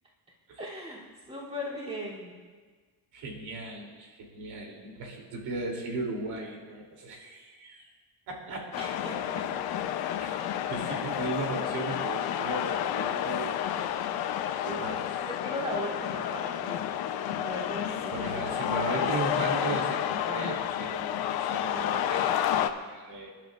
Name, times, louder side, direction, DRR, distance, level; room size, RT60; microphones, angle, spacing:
voice 1, 0.6-1.0 1.3-2.3 8.8-9.4 10.9-11.2 15.2-16.8 17.2-19.1 20.3-20.6, equal, 15° right, -7 dB, 3.2 m, -38 dB
voice 2, 3.1-7.9 8.3-8.6 10.2-13.5 14.6-15.0 18.1-23.3, right 3 dB, 85° right, 0 dB, 3.3 m, -36 dB
sound 1, 8.7-22.7, left 10 dB, 75° left, 0.9 m, -30 dB
28.5 x 12.0 x 2.6 m, 1.5 s
cardioid pair, 175°, 38 cm